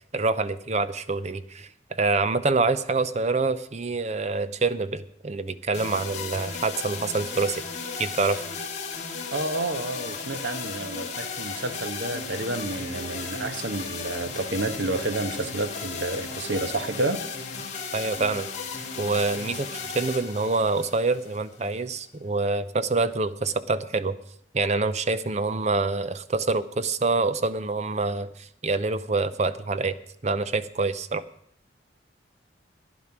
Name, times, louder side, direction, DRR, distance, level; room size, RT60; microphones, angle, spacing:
voice 1, 0.1-7.6 8.0-8.4 17.9-18.5 19.0-19.7 19.9-24.2 24.5-30.0 30.2-31.2, right 3 dB, 35° right, 13 dB, 0.7 m, -26 dB
sound 1, 5.7-21.8, left 5 dB, 40° left, 2.2 m, -35 dB
voice 2, 9.3-17.2, right 2 dB, 75° right, 9 dB, 1.2 m, -30 dB
14.5 x 10.5 x 6.0 m, 0.68 s
head